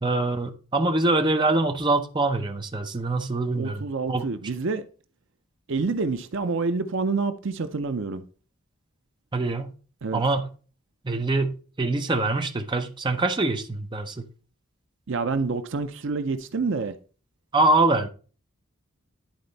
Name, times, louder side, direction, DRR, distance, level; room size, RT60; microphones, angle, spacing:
voice 1, 0.0-4.3 9.3-9.7 10.1-10.5 11.0-14.2 17.5-18.1, right 2 dB, 20° right, 0.7 m, -24 dB
voice 2, 3.5-4.8 5.7-8.2 10.0-10.2 15.1-17.0, right 4 dB, 60° right, 0.6 m, -27 dB
10.5 x 4.2 x 4.0 m
head